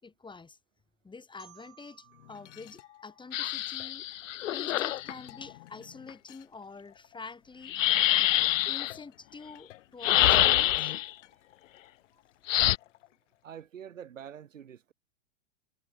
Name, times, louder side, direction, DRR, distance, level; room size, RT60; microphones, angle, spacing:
voice 1, 0.0-0.6 1.0-4.1 4.5-7.8 8.6-10.9, left 4 dB, 10° left, 6.5 m, -47 dB
Marimba xylophone, 1.4-4.2, right 15 dB, 35° right, 6.4 m, -61 dB
sound 1, 2.0-7.7 8.1-13.6, left 15 dB, 70° left, 7.3 m, -53 dB
sound 2, 3.3-5.1 7.7-8.9 10.0-11.1 12.5-12.8, left 14 dB, 85° left, 0.7 m, -25 dB
voice 2, 13.4-14.9, right 9 dB, 90° right, 7.7 m, -45 dB
hypercardioid pair, 120°, 37 cm